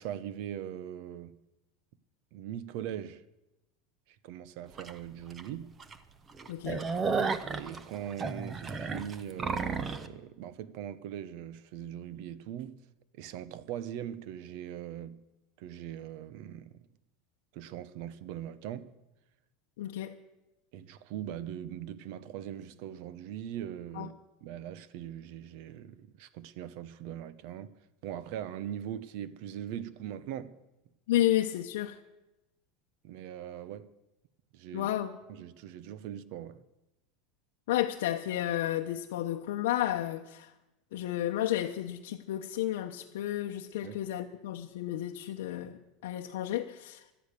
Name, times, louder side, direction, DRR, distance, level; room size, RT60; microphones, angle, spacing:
voice 1, 0.0-1.4 2.3-3.2 4.1-5.7 7.5-12.8 13.1-15.2 15.6-16.8 17.5-18.9 20.7-24.1 24.4-27.8 28.0-30.6 33.0-33.9 34.5-34.9 35.3-36.6 43.8-44.0, right 10 dB, 50° right, 0.8 m, -41 dB
sound 1, 4.8-4.9 5.4-5.5 5.8-5.9 6.3-10.1, right 4 dB, 15° right, 0.7 m, -33 dB
voice 2, 6.5-6.9 19.8-20.2 24.0-24.1 31.1-32.0 34.7-35.2 37.7-40.5 40.9-47.0, left 13 dB, 85° left, 0.9 m, -32 dB
16.5 x 12.0 x 6.8 m
supercardioid pair, 170°, 0 cm